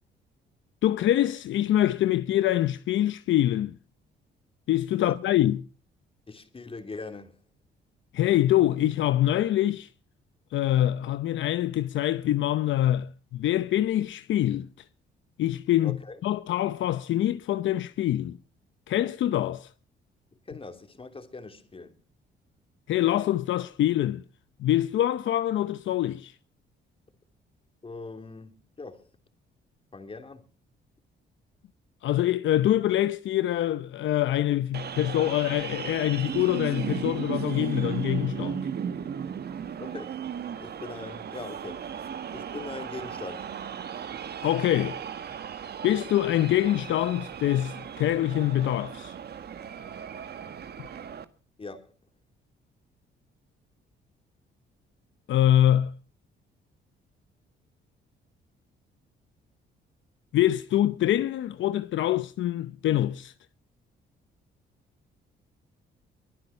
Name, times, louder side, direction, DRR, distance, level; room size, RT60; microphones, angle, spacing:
voice 1, 0.8-3.7 4.7-5.7 8.1-9.9 10.5-14.7 15.4-16.0 16.2-18.4 18.9-19.7 22.9-24.2 24.6-26.3 32.0-38.6 44.4-45.0 45.8-49.1 55.3-56.0 60.3-63.3, left 12 dB, 75° left, 0.8 m, -25 dB
voice 2, 6.3-7.4 15.8-16.2 20.5-22.0 27.8-29.1 29.9-30.5 39.8-40.2 40.6-41.8 42.3-43.5 51.6-51.9, left 3 dB, 30° left, 3.0 m, -41 dB
sound 1, 34.7-51.3, right 7 dB, 55° right, 1.5 m, -36 dB
23.0 x 9.8 x 5.7 m
cardioid pair, 90°, 20 cm